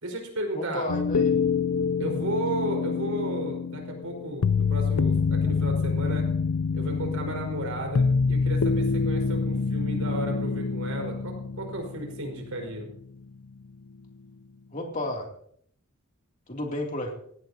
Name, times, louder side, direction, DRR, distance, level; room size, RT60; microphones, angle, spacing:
voice 1, 0.0-0.9 2.0-6.3 6.7-12.9, right 1 dB, 90° right, 2 dB, 4.8 m, -33 dB
voice 2, 0.5-1.4 14.7-15.3 16.5-17.1, left 1 dB, 35° left, 1 dB, 2.8 m, -32 dB
sound 1, 0.9-12.9 13.2-13.3, left 5 dB, 85° left, 0.5 m, -26 dB
18.0 x 16.0 x 2.8 m, 0.64 s
head